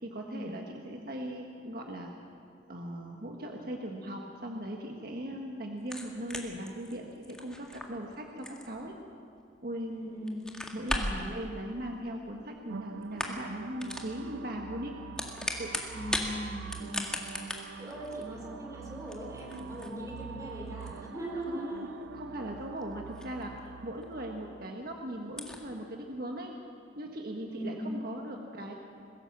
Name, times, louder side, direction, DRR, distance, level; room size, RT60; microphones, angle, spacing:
voice 1, 0.0-2.1 2.7-8.9 9.6-10.0 10.7-14.9 15.6-15.7 21.5-23.5 23.8-26.5 27.0-28.7, right 1 dB, 55° right, 1 dB, 1.5 m, -39 dB
sound 1, 5.8-9.8 10.2-11.2 12.3-12.8 13.0-13.5 13.8-14.1 14.9-16.3 16.6-23.7 24.0-24.1 24.5-24.6 24.8-24.9 25.3-25.6, left 1 dB, 5° left, 1.8 m, -38 dB
voice 2, 9.9-10.4 15.9-17.3 17.7-22.0 27.4-27.9, equal, 15° right, -2 dB, 4.5 m, -39 dB
sound 2, 12.7-24.7, right 7 dB, 85° right, 0.4 m, -46 dB
22.0 x 16.0 x 7.4 m, 2.5 s
head